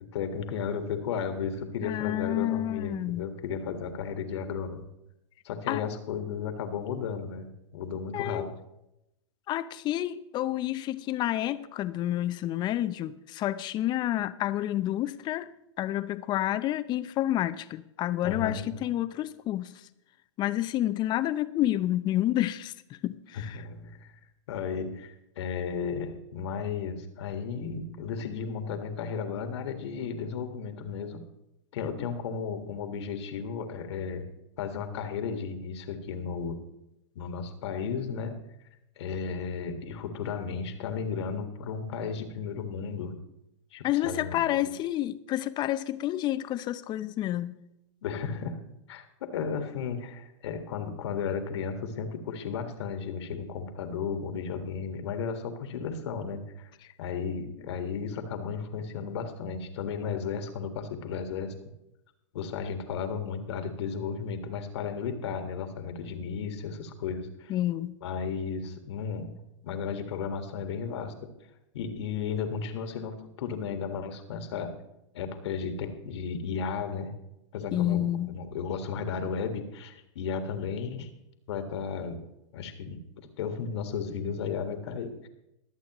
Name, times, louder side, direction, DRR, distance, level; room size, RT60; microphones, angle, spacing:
voice 1, 0.1-4.8 5.4-8.6 18.2-18.9 23.3-24.1 24.5-31.2 31.7-34.3 34.6-36.6 37.2-38.4 39.0-43.2 43.7-44.7 48.0-48.6 48.9-56.7 57.0-61.5 62.3-67.5 68.0-71.3 71.7-74.8 75.1-77.1 77.5-81.1 81.5-82.2 82.5-85.3, left 6 dB, 65° left, 1.7 m, -34 dB
voice 2, 1.8-3.3 5.7-5.9 8.1-8.5 9.5-15.5 15.8-19.8 20.4-22.7 23.0-23.6 43.8-47.6 67.5-67.9 77.7-78.3, left 13 dB, 30° left, 0.6 m, -29 dB
22.5 x 8.3 x 3.0 m
hypercardioid pair, 120°, 16 cm